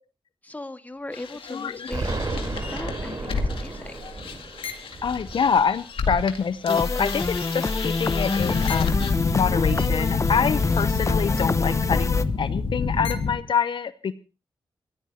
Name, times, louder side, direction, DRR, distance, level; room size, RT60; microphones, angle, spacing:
voice 1, 0.4-3.9, left 2 dB, 20° left, 8 dB, 1.8 m, -38 dB
sound 1, 1.1-6.4 6.6-13.4, left 4 dB, 90° left, 2.2 m, -28 dB
voice 2, 1.5-1.9 5.0-14.1, left 6 dB, 65° left, 13 dB, 0.8 m, -26 dB
Explosion, 1.9-6.8, right 2 dB, 45° right, 4.0 m, -33 dB
sound 2, 6.7-12.3, left 3 dB, 35° left, 1.1 m, -26 dB
27.0 x 15.5 x 2.9 m, 0.32 s
wide cardioid pair, 95°, 9 cm